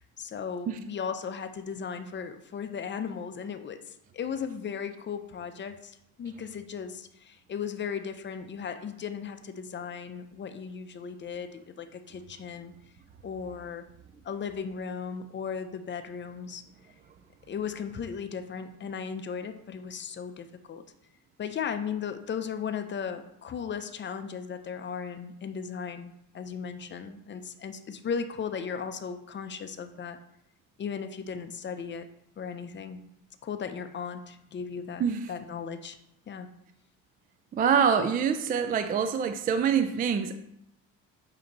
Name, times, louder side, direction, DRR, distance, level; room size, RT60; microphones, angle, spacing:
voice 1, 0.0-12.7 13.2-13.9 14.2-16.6 17.5-20.8 21.4-30.2 30.8-32.1 32.4-33.0 33.4-35.0 35.3-36.0 36.3-36.5, left 6 dB, 30° left, 9 dB, 0.5 m, -36 dB
voice 2, 37.5-40.4, right 7 dB, 25° right, 9 dB, 0.3 m, -25 dB
8.6 x 2.9 x 3.9 m, 0.80 s
supercardioid pair, 95°, 37 cm